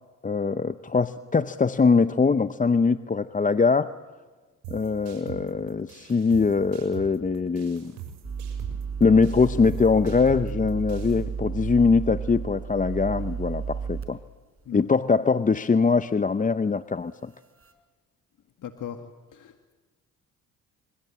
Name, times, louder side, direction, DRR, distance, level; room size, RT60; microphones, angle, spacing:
voice 1, 0.2-3.9 4.7-7.9 9.0-14.2 14.7-17.3, left 4 dB, 20° left, 12 dB, 0.8 m, -22 dB
sound 1, 4.6-11.2, right 9 dB, 90° right, 6.8 m, -44 dB
sound 2, 8.2-14.1 14.6-14.7 17.4-17.7, right 6 dB, 35° right, 5.0 m, -32 dB
voice 2, 18.6-19.0 19.3-19.7, left 10 dB, 55° left, 6 dB, 1.9 m, -37 dB
27.0 x 24.0 x 8.7 m, 1.3 s
supercardioid pair, 70°, 37 cm